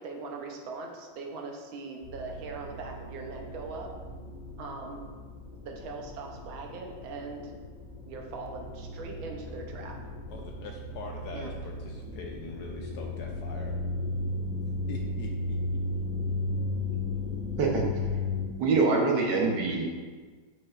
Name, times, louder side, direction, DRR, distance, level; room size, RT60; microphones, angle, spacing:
voice 1, 0.0-3.9 4.6-5.0 5.6-7.6 8.1-10.1 11.3-11.5, right 3 dB, 90° right, 1 dB, 1.6 m, -40 dB
sound 1, 2.0-18.5, left 2 dB, 55° left, 2.3 m, -35 dB
voice 2, 10.3-13.8 14.9-15.6, left 4 dB, 75° left, 1 dB, 0.9 m, -42 dB
voice 3, 18.6-19.9, right 4 dB, 65° right, 0 dB, 1.4 m, -24 dB
7.7 x 5.1 x 2.4 m, 1.5 s
omnidirectional pair, 2.1 m